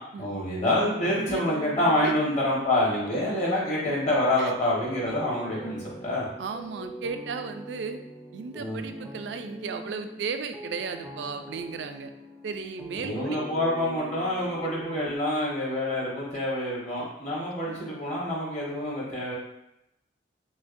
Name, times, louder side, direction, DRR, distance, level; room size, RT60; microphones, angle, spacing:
voice 1, 0.2-6.3 8.6-8.8 13.0-19.3, left 1 dB, 45° left, -6 dB, 1.4 m, -27 dB
sound 1, 0.6-15.2, right 1 dB, 5° right, 0.3 m, -42 dB
voice 2, 6.4-8.0 8.3-12.1 12.4-13.7 14.6-14.7 17.7-17.8, right 5 dB, 80° right, 8 dB, 0.3 m, -35 dB
6.0 x 2.1 x 2.6 m, 0.84 s
head